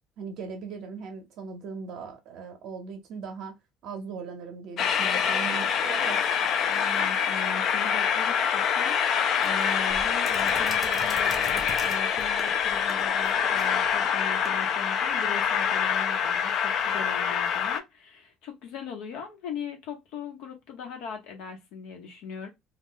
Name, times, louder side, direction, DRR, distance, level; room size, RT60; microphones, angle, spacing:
voice 1, 0.2-3.6 3.8-6.2, right 5 dB, 55° right, 0.6 m, -39 dB
Train, 4.8-17.8, left 7 dB, 45° left, 0.3 m, -25 dB
voice 2, 6.7-22.5, left 6 dB, 70° left, 0.9 m, -39 dB
sound 1, 9.4-14.6, right 1 dB, 5° right, 0.5 m, -43 dB
2.3 x 2.1 x 3.7 m
cardioid pair, 160°, 0 cm